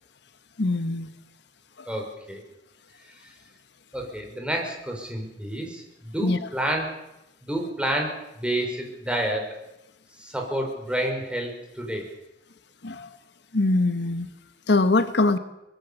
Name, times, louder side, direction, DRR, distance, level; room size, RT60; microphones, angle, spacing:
voice 1, 0.6-1.1 1.8-1.9 6.2-6.4 12.8-13.1 13.5-14.3 14.7-15.4, left 2 dB, 70° left, 11 dB, 1.2 m, -22 dB
voice 2, 1.9-2.4 3.2-3.3 3.9-6.9 7.4-9.5 10.2-12.0, right 1 dB, 5° right, 1 dB, 5.6 m, -29 dB
24.0 x 20.5 x 7.2 m, 0.94 s
head